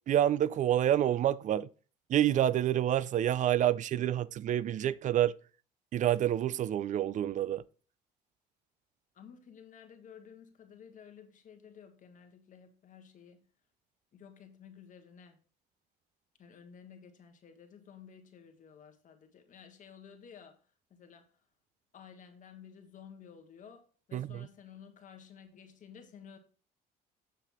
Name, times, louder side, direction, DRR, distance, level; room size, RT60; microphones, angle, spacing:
voice 1, 0.1-1.7 2.1-5.3 5.9-7.6 24.1-24.5, right 11 dB, 50° right, 0.4 m, -28 dB
voice 2, 9.1-13.5 14.1-15.4 16.4-20.6 20.9-21.3 21.9-26.4, left 7 dB, 50° left, 1.6 m, -53 dB
7.7 x 6.5 x 3.6 m
cardioid pair, 110°, 17 cm